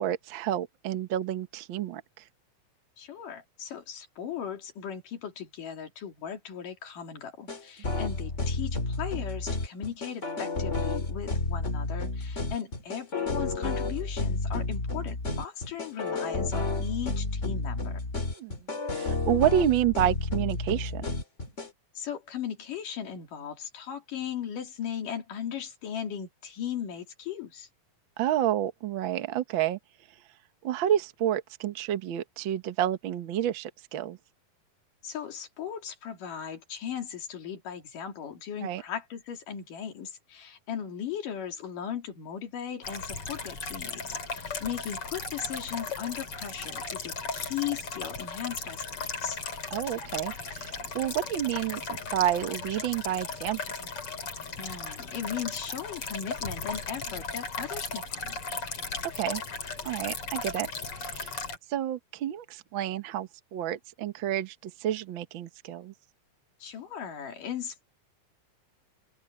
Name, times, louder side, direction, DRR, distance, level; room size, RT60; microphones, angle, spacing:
voice 1, 0.0-2.0 18.4-18.6 18.9-21.0 28.2-29.8 30.6-34.2 38.6-38.8 49.7-53.6 59.1-59.4 59.8-60.7 61.0-61.4 61.7-65.9, right 11 dB, 85° right, 1.0 m, -29 dB
voice 2, 3.0-18.0 21.9-27.7 35.0-48.8 49.2-49.4 54.6-58.4 66.6-67.8, left 8 dB, 65° left, 4.4 m, -37 dB
sound 1, 7.5-21.7, left 2 dB, 25° left, 2.4 m, -31 dB
sound 2, 42.8-61.6, left 4 dB, 40° left, 4.4 m, -36 dB
open air
omnidirectional pair, 4.0 m